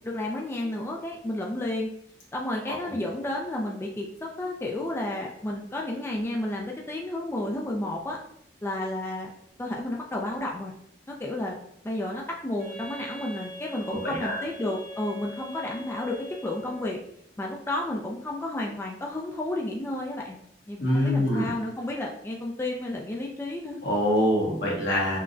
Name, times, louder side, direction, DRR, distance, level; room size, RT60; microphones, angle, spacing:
voice 1, 0.0-1.9 2.3-8.2 8.6-9.3 9.6-10.7 11.1-11.6 11.8-17.0 17.4-20.4 20.7-23.8, left 1 dB, 15° left, -1 dB, 0.3 m, -32 dB
Wind instrument woodwind instrument, 12.6-17.0, right 1 dB, 55° right, 0.9 m, -42 dB
voice 2, 14.0-14.4 20.8-21.5 23.8-25.2, equal, 75° left, -4 dB, 1.3 m, -24 dB
5.6 x 2.1 x 2.5 m, 0.73 s
head